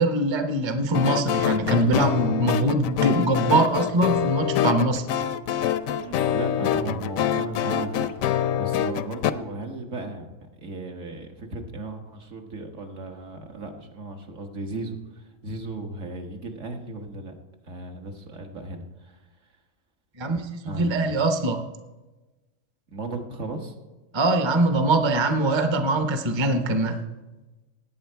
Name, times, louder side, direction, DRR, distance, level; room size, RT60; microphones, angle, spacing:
voice 1, 0.0-5.0 20.2-21.6 24.1-27.0, right 2 dB, 25° right, 6 dB, 0.7 m, -22 dB
sound 1, 0.9-9.3, left 9 dB, 80° left, 1.0 m, -25 dB
voice 2, 6.0-17.3 17.6-19.2 20.6-21.1 22.9-23.7, right 2 dB, 65° right, 3 dB, 1.6 m, -36 dB
17.5 x 8.7 x 4.5 m, 1.2 s
omnidirectional pair, 1.4 m